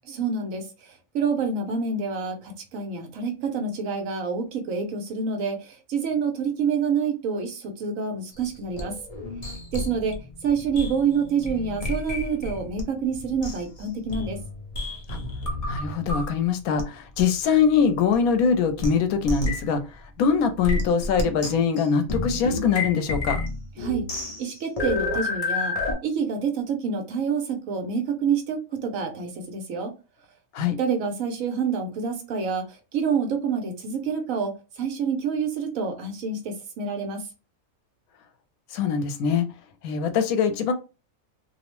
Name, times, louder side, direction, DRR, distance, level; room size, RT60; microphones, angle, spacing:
voice 1, 0.0-9.0 9.7-10.2 10.4-14.4 23.8-24.1 24.4-25.8 26.0-29.9 30.8-37.2, right 5 dB, 70° right, 1.1 m, -27 dB
sound 1, 8.4-12.8 13.1-16.4 16.8-16.9 17.2-17.3 18.1-18.2 18.8-18.9 19.3-19.6 20.6-25.9, left 2 dB, 40° left, 0.5 m, -30 dB
voice 2, 15.7-19.8 20.2-23.4 30.5-30.8 38.7-39.5 39.8-40.7, left 6 dB, 85° left, 1.0 m, -23 dB
2.7 x 2.0 x 3.0 m
omnidirectional pair, 1.5 m